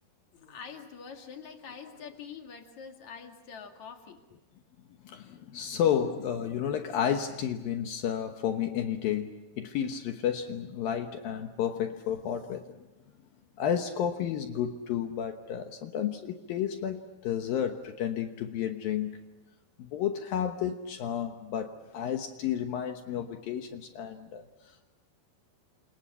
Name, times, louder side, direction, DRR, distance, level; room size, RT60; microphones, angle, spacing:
voice 1, 0.3-4.2, left 6 dB, 50° left, 4 dB, 3.2 m, -45 dB
voice 2, 5.0-12.8 13.6-19.2 19.8-24.9, left 9 dB, 70° left, 6 dB, 2.7 m, -32 dB
29.0 x 27.5 x 5.6 m, 1.1 s
omnidirectional pair, 4.8 m